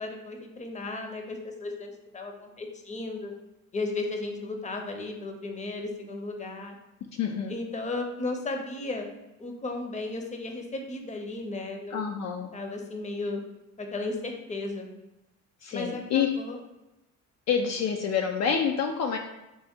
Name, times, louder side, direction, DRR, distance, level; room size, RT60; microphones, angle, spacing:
voice 1, 0.0-3.3 3.7-6.8 7.5-9.1 9.4-12.0 12.5-13.4 13.8-14.9 15.7-16.6, left 2 dB, 25° left, 3 dB, 0.7 m, -35 dB
voice 2, 7.2-7.6 11.9-12.5 15.6-16.3 17.5-19.2, left 7 dB, 60° left, 3 dB, 0.4 m, -27 dB
4.6 x 2.1 x 4.3 m, 0.96 s
cardioid pair, 90°, 30 cm